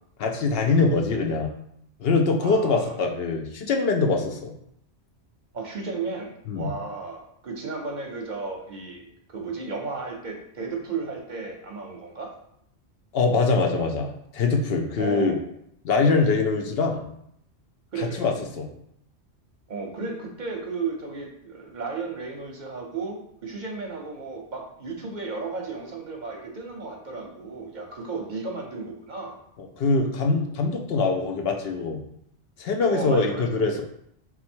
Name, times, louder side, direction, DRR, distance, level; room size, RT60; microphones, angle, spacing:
voice 1, 0.2-1.5 2.0-4.5 6.5-6.7 13.1-15.4 15.8-17.1 18.0-18.7 29.8-32.0 32.6-33.8, left 4 dB, 65° left, 3 dB, 0.7 m, -23 dB
voice 2, 2.4-3.0 5.5-12.3 15.0-15.4 17.9-18.3 19.7-29.4 32.9-33.6, right 4 dB, 50° right, 1 dB, 0.7 m, -34 dB
4.1 x 2.3 x 4.3 m, 0.72 s
omnidirectional pair, 1.1 m